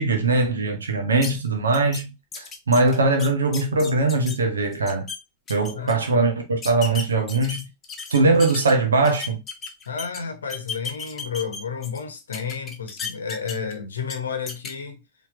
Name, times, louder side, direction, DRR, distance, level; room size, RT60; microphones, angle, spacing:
voice 1, 0.0-5.1 5.5-7.7 8.1-9.4, right 3 dB, 70° right, 1.0 m, -21 dB
sound 1, 1.2-1.3 1.7-2.0 2.3-4.4 4.7-5.2 5.5-5.9 6.6-8.7 9.0-10.2 10.5-12.0 12.3-13.7 14.1-14.2 14.5-14.7, left 5 dB, 25° left, 1.1 m, -34 dB
voice 2, 5.7-6.2 9.9-15.0, left 6 dB, 70° left, 0.9 m, -31 dB
4.4 x 3.3 x 3.1 m
figure-of-eight pair, 90°, 0 cm